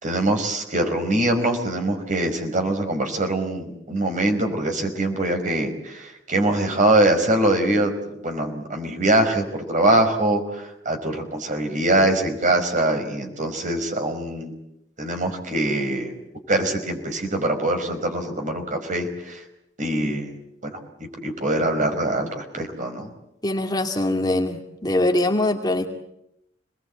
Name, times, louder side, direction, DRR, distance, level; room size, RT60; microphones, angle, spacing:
voice 1, 0.0-14.5 15.0-16.1 16.5-19.4 19.8-20.4 20.6-23.1, right 1 dB, 45° right, 5 dB, 5.2 m, -23 dB
voice 2, 23.4-25.9, left 1 dB, 20° left, 3 dB, 2.4 m, -23 dB
27.5 x 20.5 x 8.5 m, 0.81 s
head